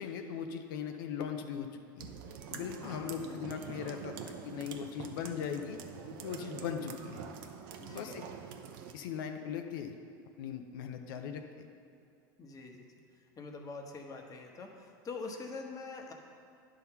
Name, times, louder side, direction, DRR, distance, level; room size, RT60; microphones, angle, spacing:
voice 1, 0.0-1.7 1.9-2.1 2.5-5.8 6.2-7.3 7.9-8.2 8.9-10.0 10.4-11.7, left 7 dB, 70° left, 5 dB, 0.7 m, -39 dB
sound 1, 2.0-8.9, right 7 dB, 70° right, 0.8 m, -45 dB
voice 2, 2.7-3.7 7.8-8.3 12.4-16.1, left 3 dB, 30° left, 2 dB, 1.2 m, -45 dB
10.5 x 3.8 x 5.8 m, 2.5 s
hypercardioid pair, 95°, 11 cm